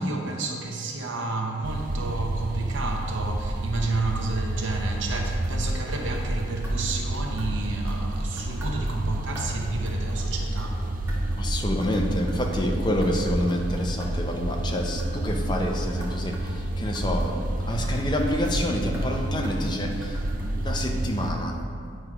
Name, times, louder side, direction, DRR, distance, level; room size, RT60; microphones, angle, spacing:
voice 1, 0.0-10.9, right 3 dB, 80° right, 1 dB, 0.8 m, -31 dB
sound 1, 1.6-21.3, right 1 dB, 45° right, 0.4 m, -29 dB
sound 2, 5.2-20.5, equal, 10° right, 0.9 m, -39 dB
voice 2, 11.4-20.2 20.6-21.6, left 1 dB, 25° left, 2 dB, 0.5 m, -28 dB
8.8 x 3.1 x 4.9 m, 2.3 s
head